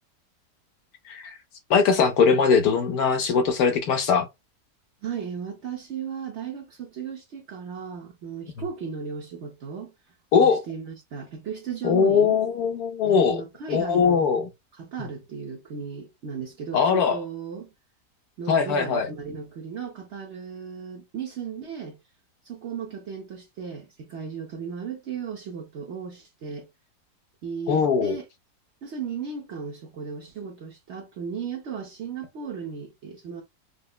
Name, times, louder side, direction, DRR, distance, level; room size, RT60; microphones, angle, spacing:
voice 1, 1.7-4.3 10.3-10.6 11.8-13.4 13.7-14.4 16.7-17.2 18.5-19.1 27.7-28.2, left 6 dB, 70° left, 1.1 m, -21 dB
voice 2, 5.0-9.9 10.4-12.4 13.0-14.3 14.7-17.7 18.4-22.0 22.4-26.7 27.4-28.2 28.8-33.4, right 6 dB, 55° right, 0.8 m, -36 dB
5.0 x 2.0 x 2.3 m
omnidirectional pair, 1.7 m